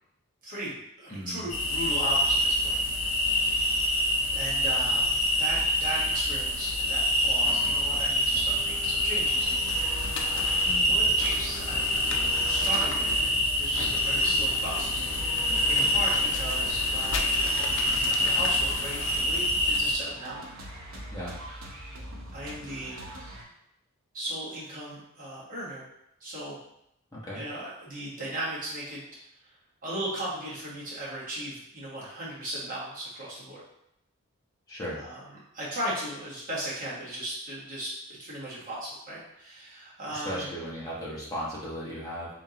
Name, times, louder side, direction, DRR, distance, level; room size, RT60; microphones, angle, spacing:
voice 1, 0.4-3.7 4.3-9.5 10.2-12.2 12.5-17.7 18.1-20.4 22.3-23.0 24.1-25.8 26.2-26.6 27.3-29.0 29.8-33.6 34.9-35.2 35.5-40.5, right 1 dB, 40° right, -7 dB, 1.4 m, -37 dB
voice 2, 1.1-1.5 10.6-11.1 21.1-21.3 27.1-27.4 34.7-35.0 40.1-42.3, equal, 15° left, -8 dB, 1.3 m, -36 dB
sound 1, 1.5-19.9, equal, 75° left, 1.2 m, -26 dB
sound 2, 7.4-23.4, right 1 dB, 75° right, 0.9 m, -43 dB
sound 3, 9.7-19.2, left 3 dB, 60° left, 0.5 m, -38 dB
3.7 x 3.6 x 2.9 m, 0.79 s
head